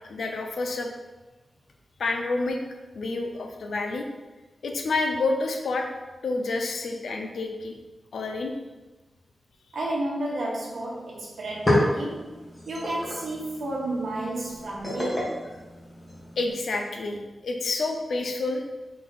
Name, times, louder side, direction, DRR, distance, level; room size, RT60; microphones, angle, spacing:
voice 1, 0.1-0.9 2.0-2.6 3.0-4.0 4.6-5.9 6.2-7.7 8.1-8.5 16.4-18.6, left 3 dB, 90° left, 3 dB, 0.5 m, -28 dB
voice 2, 9.7-12.3 12.7-15.4, right 1 dB, 85° right, -3 dB, 1.0 m, -31 dB
sound 1, 10.9-11.0 11.3-16.5, left 1 dB, 20° left, 1.0 m, -30 dB
3.9 x 2.8 x 3.9 m, 1.2 s
wide cardioid pair, 135°, 0 cm